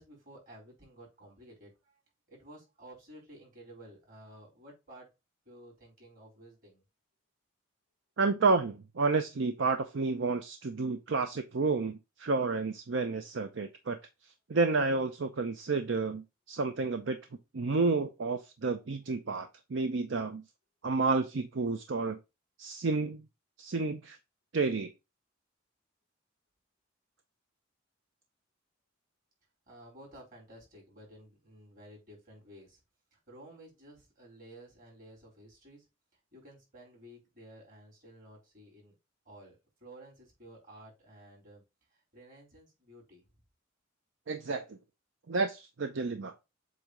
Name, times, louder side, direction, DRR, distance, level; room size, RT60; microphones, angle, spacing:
voice 1, 0.0-2.0 2.3-5.1 5.4-6.8 29.7-32.8 33.1-35.9 36.3-38.9 39.2-41.6 41.9-43.3, right 1 dB, 45° right, 4.3 m, -53 dB
voice 2, 8.2-14.0 14.5-17.2 17.5-20.4 20.8-22.2 22.6-23.2 23.6-24.2 24.5-24.9 44.3-44.8 45.3-46.3, right 3 dB, 70° right, 0.6 m, -30 dB
7.7 x 2.7 x 4.9 m
head